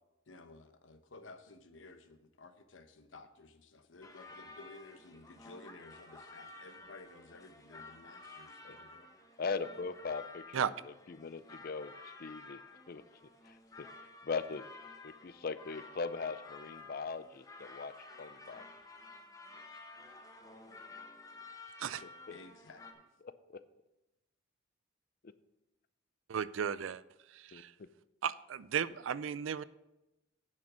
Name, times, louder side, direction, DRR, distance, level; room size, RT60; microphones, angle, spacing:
voice 1, 0.3-9.1 22.3-23.1, left 3 dB, 80° left, 9 dB, 0.9 m, -55 dB
sound 1, 4.0-22.9, left 3 dB, 20° left, 1.0 m, -52 dB
voice 2, 9.4-10.7 11.1-12.6 12.9-13.0 13.5-13.9 14.2-14.7 15.0-18.6 23.2-23.6 27.5-27.9, left 4 dB, 50° left, 14 dB, 0.5 m, -40 dB
voice 3, 26.3-27.0 27.3-27.7 28.2-29.6, right 8 dB, 85° right, 17 dB, 0.4 m, -35 dB
9.6 x 6.5 x 6.1 m, 0.95 s
head